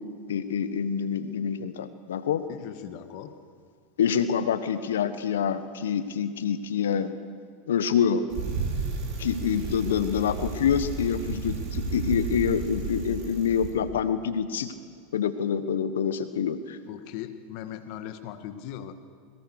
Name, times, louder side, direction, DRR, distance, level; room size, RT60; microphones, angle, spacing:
voice 1, 0.3-2.4 4.0-7.1 7.7-8.2 9.2-14.7 15.1-16.8, left 7 dB, 80° left, 11 dB, 1.3 m, -26 dB
voice 2, 2.5-3.3 16.9-18.9, left 10 dB, 60° left, 9 dB, 1.7 m, -39 dB
Bicycle, 8.3-13.7, right 4 dB, 50° right, 5.3 m, -32 dB
22.5 x 19.0 x 6.5 m, 2.1 s
hypercardioid pair, 95°, 0 cm